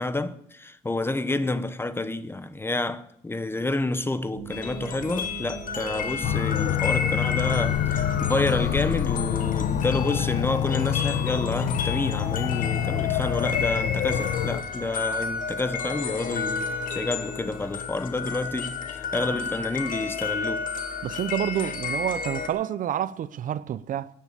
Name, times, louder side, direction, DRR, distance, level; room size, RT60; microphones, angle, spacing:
voice 1, 0.0-20.7, left 2 dB, 15° left, 0.9 m, -29 dB
sound 1, 4.3-10.2, right 8 dB, 80° right, 2.6 m, -41 dB
sound 2, 4.5-22.5, left 5 dB, 55° left, 2.1 m, -32 dB
sound 3, 6.2-14.6, left 11 dB, 75° left, 0.9 m, -26 dB
voice 2, 21.0-24.1, right 10 dB, 50° right, 0.6 m, -28 dB
17.5 x 9.9 x 6.8 m
cardioid pair, 110°, 17 cm